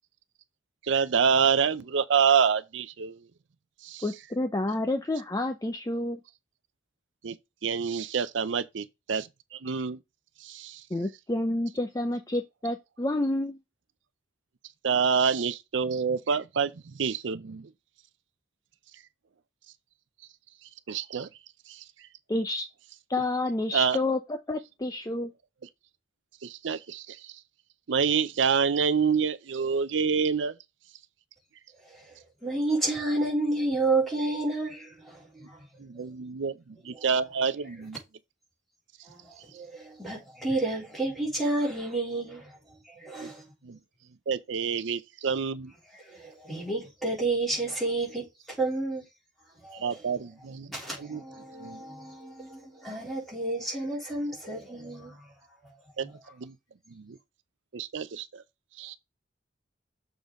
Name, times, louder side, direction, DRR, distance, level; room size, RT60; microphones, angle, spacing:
voice 1, 0.8-3.2 3.8-4.0 7.2-7.4 7.6-10.0 10.4-10.8 14.8-16.7 17.0-17.7 20.9-21.3 21.7-21.8 23.7-24.0 26.4-27.3 27.9-30.5 35.8-37.5 37.9-38.0 43.2-43.3 43.6-43.8 44.3-45.7 49.7-50.7 51.0-51.2 51.6-51.8 56.0-56.1 56.4-56.5 56.9-57.2 57.7-58.4 58.8-59.0, right 6 dB, 75° right, 0.5 m, -27 dB
voice 2, 4.0-6.2 10.9-13.6 22.3-22.7 23.1-25.3, left 2 dB, 20° left, 0.6 m, -29 dB
voice 3, 32.4-35.5 39.1-42.5 42.9-43.4 46.1-48.2 48.6-49.0 49.6-49.9 50.7-55.1, right 2 dB, ahead, 3.8 m, -30 dB
6.9 x 3.9 x 5.1 m
head